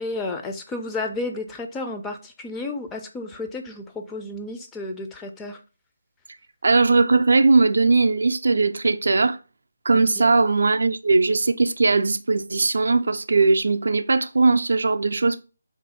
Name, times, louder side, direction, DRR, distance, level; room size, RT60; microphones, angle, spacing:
voice 1, 0.0-5.6 9.9-10.3, left 2 dB, 10° left, 0.3 m, -32 dB
voice 2, 6.6-9.4 9.9-15.4, right 3 dB, 65° right, 0.3 m, -19 dB
3.4 x 2.5 x 4.0 m
figure-of-eight pair, 150°, 0 cm